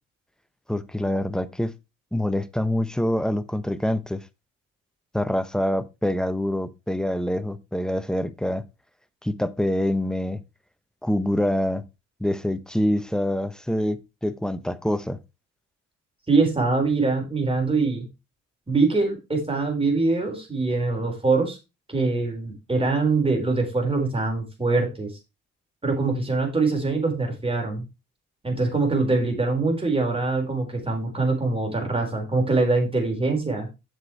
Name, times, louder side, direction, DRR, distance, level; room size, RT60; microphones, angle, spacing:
voice 1, 0.7-1.7 2.1-4.2 5.1-8.6 9.2-10.4 11.0-11.8 12.2-15.2, left 1 dB, ahead, 0.8 m, -25 dB
voice 2, 16.3-18.1 18.7-21.6 21.9-25.1 25.8-27.8 28.4-33.7, right 3 dB, 20° right, 4.4 m, -23 dB
8.2 x 6.1 x 4.6 m
cardioid pair, 90°, 30 cm